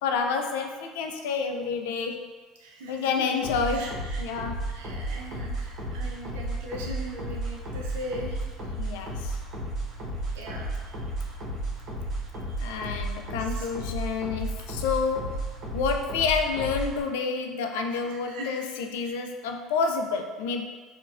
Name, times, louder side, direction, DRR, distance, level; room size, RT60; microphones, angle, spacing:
voice 1, 0.0-2.3 2.9-4.6 8.8-9.4 12.6-20.7, left 5 dB, 85° left, 4 dB, 0.3 m, -29 dB
voice 2, 2.6-3.2 3.7-4.4 4.7-8.4 8.8-8.9 10.3-10.9 12.7-12.9 13.4-13.7 18.3-18.6 19.0-19.2, equal, 90° right, -1 dB, 0.5 m, -40 dB
sound 1, 3.4-17.0, right 1 dB, 55° right, 1.0 m, -33 dB
4.0 x 2.3 x 2.4 m, 1.4 s
supercardioid pair, 90°, 0 cm